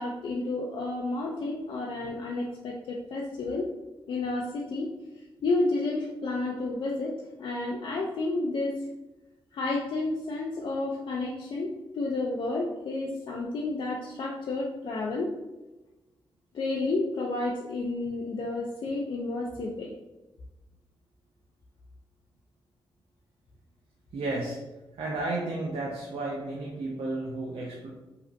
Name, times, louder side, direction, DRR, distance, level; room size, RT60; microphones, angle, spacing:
voice 1, 0.0-3.7 4.1-4.9 5.4-8.8 9.5-15.3 16.5-19.9, left 2 dB, 65° left, -2 dB, 0.4 m, -31 dB
voice 2, 24.1-24.6 24.9-27.9, right 2 dB, 75° right, -3 dB, 0.5 m, -32 dB
2.8 x 2.4 x 2.5 m, 1.1 s
cardioid pair, 55°, 9 cm